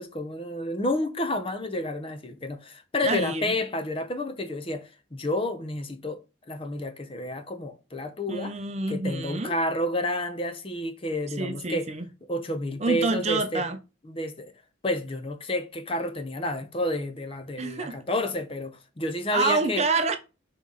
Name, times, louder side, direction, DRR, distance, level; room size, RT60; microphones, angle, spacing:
voice 1, 0.0-6.2 6.5-8.5 8.9-11.9 12.3-13.6 14.1-14.5 14.8-19.8, left 1 dB, 30° left, 0.7 m, -30 dB
voice 2, 3.0-3.5 8.3-9.5 11.4-12.1 12.8-13.8 17.6-18.0 19.3-20.2, right 3 dB, 35° right, 0.6 m, -27 dB
6.0 x 3.2 x 5.5 m
head